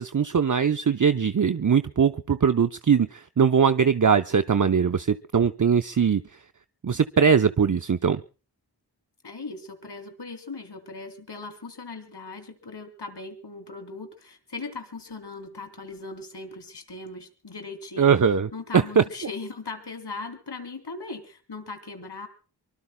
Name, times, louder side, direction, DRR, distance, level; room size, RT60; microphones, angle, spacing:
voice 1, 0.0-6.2 6.8-8.2 18.0-18.5 18.7-19.0, right 6 dB, 50° right, 10 dB, 0.7 m, -21 dB
voice 2, 9.2-18.1 18.5-22.3, left 3 dB, 85° left, 8 dB, 2.9 m, -39 dB
24.5 x 24.0 x 2.2 m, 0.38 s
wide cardioid pair, 60°, 40 cm